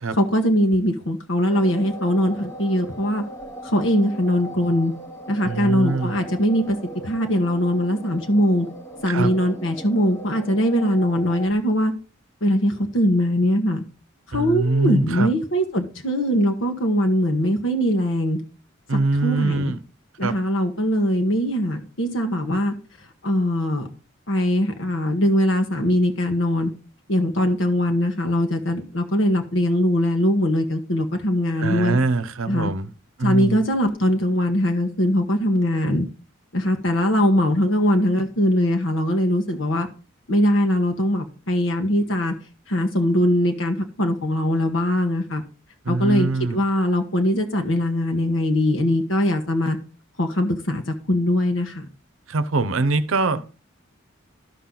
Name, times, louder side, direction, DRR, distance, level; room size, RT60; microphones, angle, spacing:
voice 1, 0.2-3.2 3.6-4.9 5.3-6.8 7.0-8.7 9.0-11.9 12.4-13.8 14.3-18.4 18.9-19.7 20.2-22.7 23.2-23.9 24.3-26.7 27.1-32.0 32.4-32.7 33.2-36.1 36.5-39.9 40.3-42.3 42.7-45.4 45.9-49.8 50.2-50.8 51.1-51.9, equal, 70° left, 1.2 m, -21 dB
sound 1, 1.5-11.5, right 1 dB, 15° left, 0.9 m, -38 dB
voice 2, 5.4-6.1 9.1-9.3 14.3-15.3 18.9-19.8 20.2-20.4 31.6-32.9 33.2-33.6 45.8-46.6 52.3-53.5, right 3 dB, 80° right, 0.7 m, -23 dB
12.0 x 5.9 x 3.9 m
head